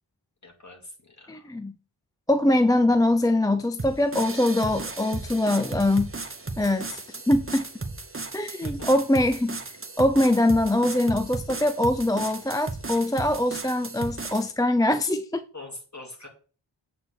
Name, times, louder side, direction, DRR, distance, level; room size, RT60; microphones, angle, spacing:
voice 1, 0.4-1.5 8.6-9.0 15.5-16.3, left 2 dB, 35° left, 2.4 m, -43 dB
voice 2, 1.3-1.7 2.3-6.1 6.6-7.0 7.3-7.7 8.3-9.6 10.0-15.4, left 1 dB, 10° left, 0.4 m, -23 dB
sound 1, 3.8-14.5, right 3 dB, 25° right, 1.0 m, -35 dB
7.8 x 3.9 x 6.3 m
wide cardioid pair, 80°, 47 cm